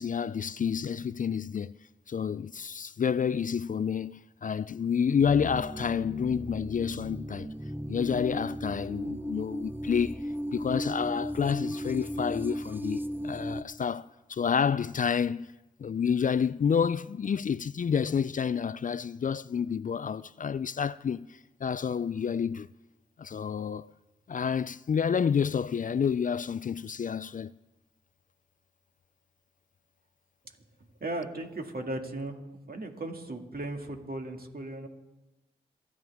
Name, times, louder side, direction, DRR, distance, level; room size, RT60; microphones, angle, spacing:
voice 1, 0.0-1.7 2.1-7.5 7.9-10.2 10.5-15.5 15.8-21.3 21.6-22.7 23.2-23.9 24.3-27.5, left 7 dB, 45° left, 0.4 m, -29 dB
sound 1, 5.2-13.6, equal, 10° right, 0.8 m, -36 dB
voice 2, 31.0-32.4 32.7-34.9, right 2 dB, 55° right, 2.1 m, -36 dB
27.0 x 9.3 x 3.6 m
cardioid pair, 45°, 18 cm